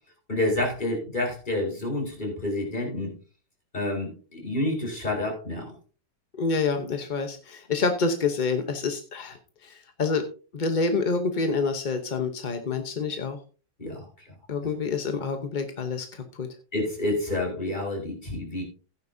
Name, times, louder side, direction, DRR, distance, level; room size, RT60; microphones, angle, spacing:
voice 1, 0.3-3.1 3.7-5.7 13.8-14.3 16.7-18.6, left 1 dB, 25° left, 0 dB, 4.0 m, -29 dB
voice 2, 6.3-10.2 10.5-13.4 14.5-16.5, left 4 dB, 40° left, 6 dB, 0.7 m, -27 dB
15.5 x 9.8 x 2.7 m, 0.36 s
omnidirectional pair, 2.1 m